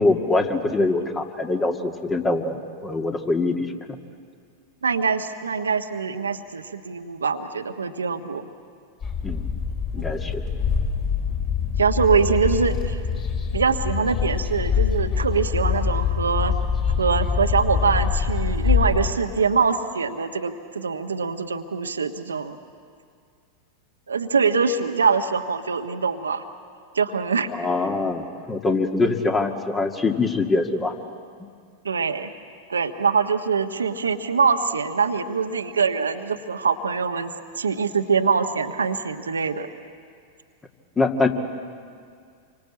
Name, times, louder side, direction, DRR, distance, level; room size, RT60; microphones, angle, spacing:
voice 1, 0.0-3.7 9.2-9.4 9.9-10.4 27.5-31.0 41.0-41.3, left 3 dB, 15° left, 4 dB, 2.2 m, -23 dB
voice 2, 4.8-8.4 11.8-13.0 13.5-16.5 17.0-22.6 24.1-26.4 26.9-27.5 31.8-32.3 32.7-39.7, right 5 dB, 75° right, 5 dB, 1.4 m, -23 dB
sound 1, 9.0-19.1, left 6 dB, 30° left, 5.1 m, -24 dB
28.5 x 24.5 x 8.7 m, 2.2 s
figure-of-eight pair, 90°, 0 cm